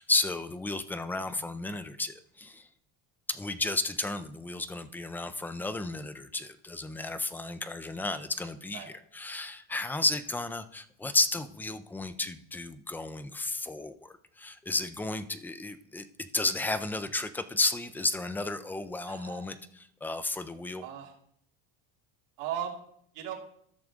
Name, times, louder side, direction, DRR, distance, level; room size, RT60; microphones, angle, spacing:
voice 1, 0.0-2.7 3.3-8.8 9.1-19.6 20.0-20.9, left 2 dB, 5° left, 11 dB, 0.3 m, -33 dB
voice 2, 19.1-19.5 20.8-21.1 22.4-22.8 23.1-23.3, right 9 dB, 75° right, -1 dB, 2.9 m, -37 dB
14.0 x 6.4 x 3.6 m, 0.67 s
cardioid pair, 130°, 44 cm